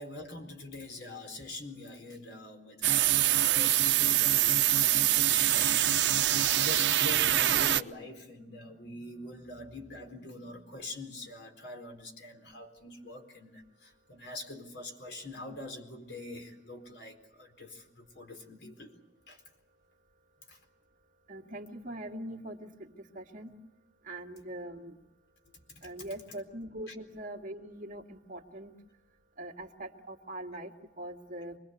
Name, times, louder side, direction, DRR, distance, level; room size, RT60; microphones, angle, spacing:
voice 1, 0.0-19.0 19.3-19.4 20.5-20.6 25.7-26.1 26.9-27.0, left 2 dB, 70° left, 4 dB, 4.2 m, -44 dB
sound 1, 2.8-7.8, right 12 dB, 85° right, 0.8 m, -25 dB
voice 2, 21.3-23.5 24.0-25.0 25.8-28.7 29.4-31.6, right 1 dB, 45° right, 2 dB, 2.1 m, -42 dB
26.0 x 21.0 x 8.2 m, 0.96 s
head